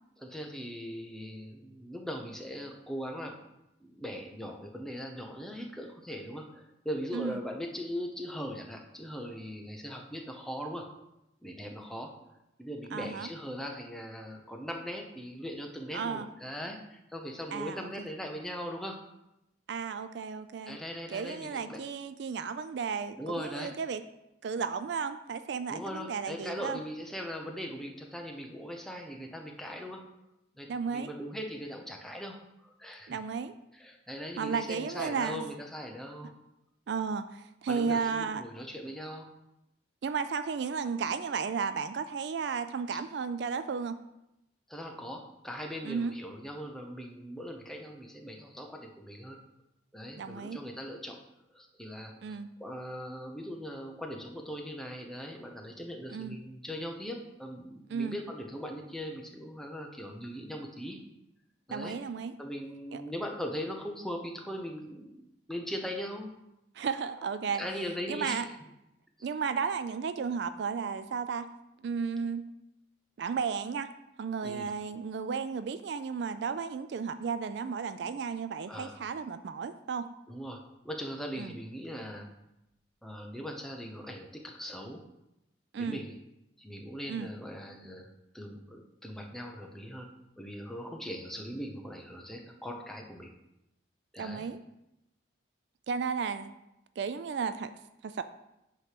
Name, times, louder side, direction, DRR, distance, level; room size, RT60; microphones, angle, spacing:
voice 1, 0.2-3.4 3.8-10.9 11.4-12.1 12.6-19.1 20.7-21.8 23.2-23.7 25.7-30.0 30.5-33.2 33.7-36.3 37.7-39.3 44.7-49.4 49.9-51.2 51.5-61.0 61.7-61.9 62.4-65.2 65.5-66.3 67.5-68.5 74.4-74.7 78.7-79.0 80.3-82.3 83.0-85.0 85.8-86.1 86.6-90.1 90.4-93.3 94.1-94.5, equal, ahead, 1 dB, 0.7 m, -40 dB
voice 2, 12.9-13.3 15.9-16.3 17.5-18.1 19.7-20.8 21.1-24.0 24.4-26.8 30.7-31.1 33.1-33.5 34.4-35.4 36.9-38.4 40.0-44.0 45.8-46.1 50.2-50.6 52.2-52.5 56.1-56.4 57.9-58.2 61.7-62.3 62.9-63.0 66.7-67.6 68.1-68.5 69.2-71.5 71.8-72.5 73.2-73.9 74.2-80.1 81.4-81.5 85.7-86.0 87.1-87.3 94.2-94.6 95.9-96.5 97.0-97.7 98.0-98.2, right 5 dB, 65° right, 11 dB, 0.3 m, -34 dB
8.5 x 3.2 x 5.8 m, 0.88 s
head